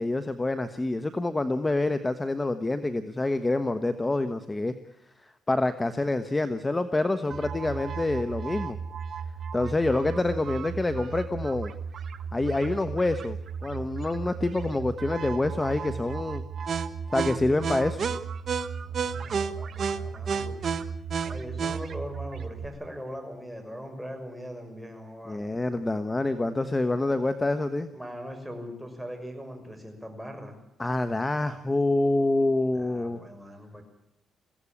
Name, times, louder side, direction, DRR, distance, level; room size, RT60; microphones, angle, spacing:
voice 1, 0.0-4.7 5.2-8.8 9.5-11.7 12.3-16.4 17.1-18.0 25.3-27.9 30.8-33.2, left 2 dB, 20° left, 11 dB, 1.2 m, -27 dB
sound 1, 7.3-22.7, right 6 dB, 50° right, 1.4 m, -33 dB
voice 2, 18.8-20.8 21.2-25.4 26.5-26.7 27.9-30.6 32.7-33.8, equal, 5° right, 4 dB, 6.1 m, -41 dB
22.5 x 16.5 x 8.7 m, 0.81 s
cardioid pair, 90°, 0 cm